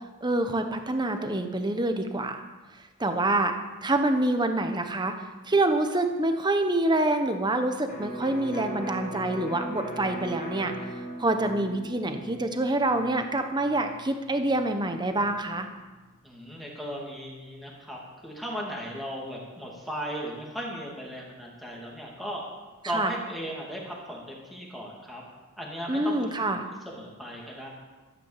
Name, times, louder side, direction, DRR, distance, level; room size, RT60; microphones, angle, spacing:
voice 1, 0.2-2.4 3.0-3.5 3.8-10.7 11.2-15.7 22.8-23.1 25.9-26.6, right 2 dB, 20° right, 6 dB, 1.1 m, -26 dB
Electric guitar, 7.9-15.5, right 1 dB, 40° left, 3.8 m, -40 dB
voice 2, 16.2-22.4 22.8-25.2 25.6-26.5 26.9-27.7, equal, ahead, -3 dB, 2.7 m, -37 dB
13.5 x 10.0 x 7.4 m, 1.2 s
head